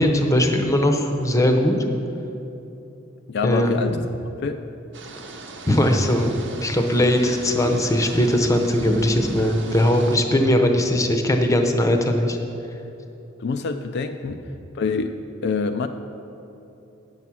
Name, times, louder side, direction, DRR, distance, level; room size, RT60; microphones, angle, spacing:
voice 1, 0.0-1.8 3.4-3.8 5.7-12.4, left 1 dB, 15° left, 5 dB, 0.7 m, -20 dB
voice 2, 3.3-4.0 4.4-4.6 13.4-14.4 14.7-15.9, left 4 dB, 55° left, 7 dB, 0.4 m, -26 dB
sound 1, 4.9-10.2, right 1 dB, 65° right, 0.9 m, -34 dB
9.4 x 7.0 x 6.1 m, 2.9 s
head